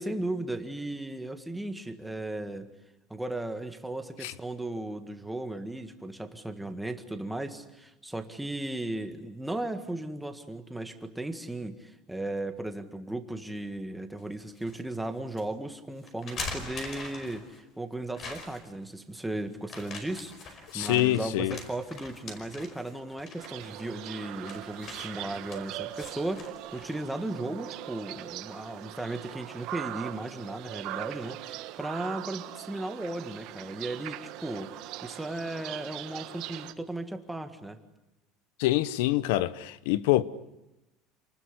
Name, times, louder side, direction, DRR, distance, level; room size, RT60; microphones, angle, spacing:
voice 1, 0.0-2.7 3.1-34.7 35.0-37.8, right 1 dB, 5° right, 1.8 m, -36 dB
sound 1, 14.2-14.8 15.3-15.4 16.1-17.6 18.1-18.8 19.6-27.1, left 3 dB, 30° left, 5.1 m, -43 dB
voice 2, 20.7-21.6 38.6-40.2, left 16 dB, 90° left, 1.1 m, -25 dB
sound 2, 23.4-36.7, right 15 dB, 50° right, 1.4 m, -41 dB
28.5 x 20.0 x 9.9 m
cardioid pair, 175°, 0 cm